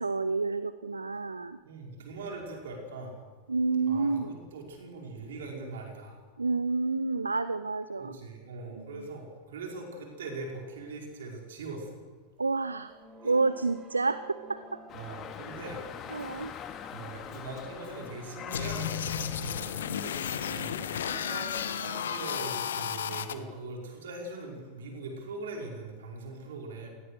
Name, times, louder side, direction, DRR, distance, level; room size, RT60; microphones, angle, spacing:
voice 1, 0.0-1.6 3.5-4.4 6.4-8.2 8.7-9.1 12.4-12.9 13.2-14.8 16.1-16.5, right 3 dB, 80° right, 15 dB, 0.7 m, -29 dB
voice 2, 1.6-3.2 3.8-6.2 8.0-12.0 14.9-15.8 16.9-19.7 20.2-26.9, right 3 dB, 60° right, 1 dB, 5.3 m, -41 dB
sound 1, 10.2-11.0 11.9-12.0 12.5-15.6, right 2 dB, 25° right, 4.0 m, -50 dB
Dog, 14.9-21.2, left 8 dB, 30° left, 4.6 m, -44 dB
sound 2, 18.5-23.3, left 8 dB, 65° left, 1.5 m, -33 dB
26.5 x 19.5 x 6.5 m, 1.4 s
figure-of-eight pair, 90°, 0 cm